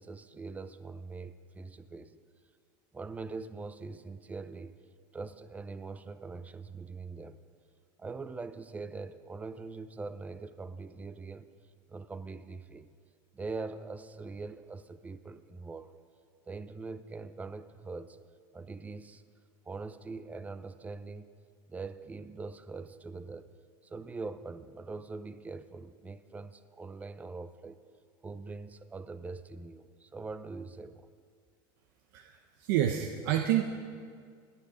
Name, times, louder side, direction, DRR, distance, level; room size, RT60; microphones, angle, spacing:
voice 1, 0.0-2.2 2.9-4.7 5.1-7.4 8.0-11.5 11.9-12.9 13.3-16.0 16.5-18.2 18.5-19.2 19.7-21.3 21.7-23.5 23.8-27.8 28.2-31.1, right 3 dB, 15° right, 13 dB, 0.6 m, -42 dB
voice 2, 32.1-33.6, right 11 dB, 80° right, 4 dB, 1.0 m, -29 dB
28.5 x 10.0 x 5.1 m, 2.1 s
supercardioid pair, 135°, 11 cm